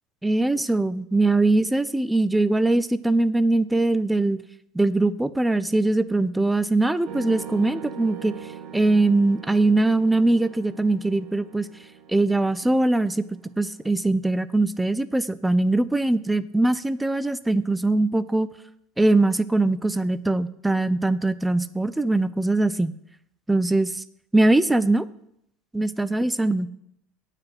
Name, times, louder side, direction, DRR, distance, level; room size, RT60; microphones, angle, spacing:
voice 1, 0.2-4.4 4.7-8.4 8.7-11.7 12.1-13.2 13.6-18.5 19.0-22.9 23.5-24.0 24.3-25.1 25.7-26.7, right 2 dB, 5° right, 15 dB, 0.4 m, -21 dB
sound 1, 7.0-14.0, right 8 dB, 50° right, 0.9 m, -42 dB
9.1 x 4.9 x 7.5 m, 0.76 s
supercardioid pair, 150°, 0 cm